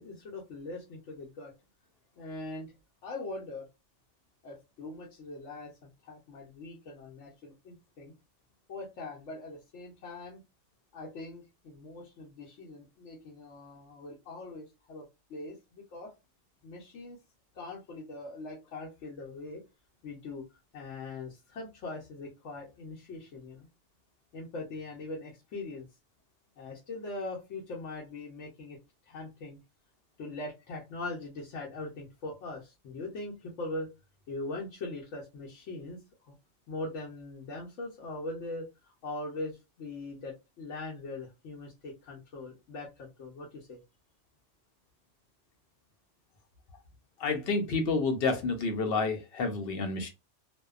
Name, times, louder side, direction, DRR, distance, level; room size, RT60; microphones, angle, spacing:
voice 1, 0.0-1.5 2.2-2.7 3.0-3.7 4.4-8.1 8.7-10.4 10.9-16.1 16.6-17.2 17.5-19.6 20.0-20.5 20.7-23.7 24.3-25.9 26.6-28.8 29.0-29.6 30.2-33.9 34.3-36.3 36.7-43.8, left 2 dB, 85° left, -2 dB, 1.0 m, -41 dB
voice 2, 47.2-50.1, left 3 dB, 65° left, 5 dB, 0.7 m, -29 dB
2.7 x 2.1 x 2.3 m, 0.25 s
omnidirectional pair, 1.2 m